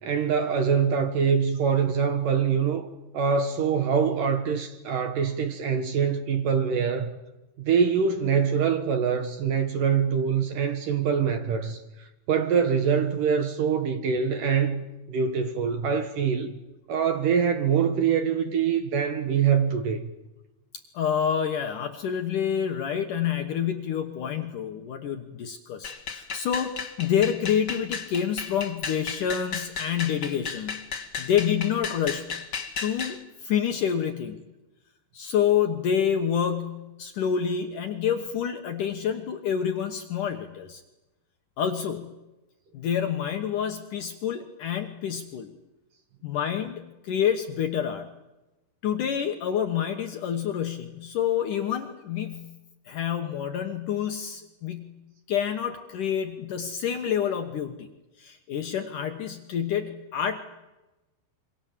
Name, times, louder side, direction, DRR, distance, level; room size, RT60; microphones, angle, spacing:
voice 1, 0.0-2.9 3.1-7.1 7.6-16.6 16.9-20.1, right 6 dB, 60° right, 2.5 m, -24 dB
voice 2, 20.9-30.8 31.2-32.3 32.8-34.4 35.1-40.8 41.6-42.1 42.7-45.5 46.2-48.1 48.8-52.5 52.9-55.0 55.3-57.9 58.2-60.4, left 8 dB, 65° left, 2.3 m, -28 dB
sound 1, 25.8-33.2, left 5 dB, 45° left, 1.3 m, -34 dB
27.0 x 25.0 x 7.5 m
omnidirectional pair, 5.1 m